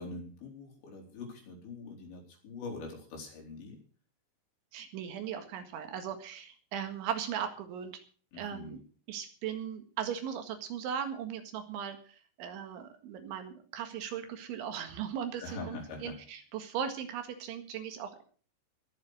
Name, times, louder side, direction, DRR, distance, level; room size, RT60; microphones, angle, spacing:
voice 1, 0.0-3.8 8.3-8.8 15.4-16.2, left 3 dB, 65° left, 0 dB, 6.3 m, -43 dB
voice 2, 4.7-8.0 8.3-8.8 9.1-18.2, right 8 dB, 75° right, 7 dB, 4.1 m, -38 dB
21.5 x 7.5 x 6.5 m, 0.43 s
omnidirectional pair, 5.5 m